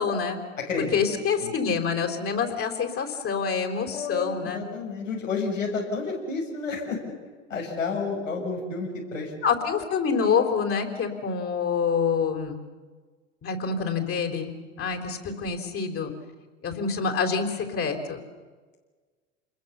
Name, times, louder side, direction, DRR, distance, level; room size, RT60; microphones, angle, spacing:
voice 1, 0.0-0.4 0.9-4.6 9.4-12.6 13.4-16.1 16.6-18.2, left 6 dB, 35° left, 3 dB, 4.1 m, -26 dB
voice 2, 0.6-1.0 1.4-1.5 3.9-7.2 7.5-9.3, left 4 dB, 80° left, -1 dB, 6.3 m, -30 dB
27.5 x 21.5 x 7.0 m, 1.4 s
hypercardioid pair, 85°, 38 cm